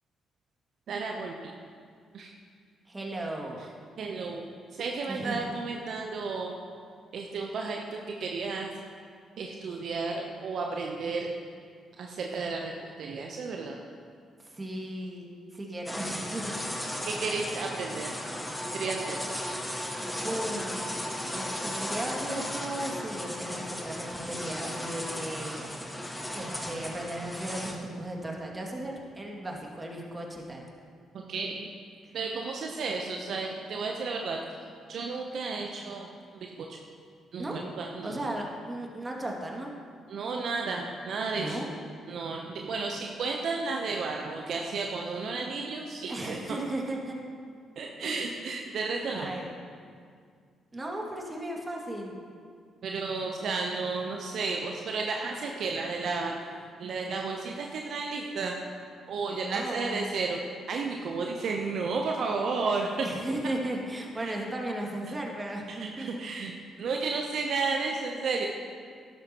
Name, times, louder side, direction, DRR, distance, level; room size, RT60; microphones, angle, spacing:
voice 1, 0.9-1.5 2.1-2.3 4.0-6.6 7.1-8.7 9.4-11.3 12.0-13.8 17.0-18.1 18.7-19.2 31.1-31.7 32.1-34.4 34.9-36.8 37.3-38.3 40.1-41.6 42.1-46.6 47.8-49.3 52.8-56.4 56.8-58.6 59.1-60.4 60.7-63.1 64.2-64.4 65.7-68.5, right 4 dB, 65° right, 1 dB, 0.8 m, -33 dB
voice 2, 2.9-3.6 5.1-5.5 14.4-16.5 20.0-21.0 21.3-25.7 26.3-30.6 37.4-37.6 38.0-39.7 41.3-41.7 46.1-47.2 48.0-48.4 49.1-49.6 50.7-52.1 59.3-60.1 63.0-66.1, right 1 dB, 25° right, -1 dB, 2.3 m, -36 dB
sound 1, 15.9-27.7, left 1 dB, 10° left, 1.6 m, -35 dB
12.5 x 11.5 x 3.0 m, 2.1 s
hypercardioid pair, 50°, 0 cm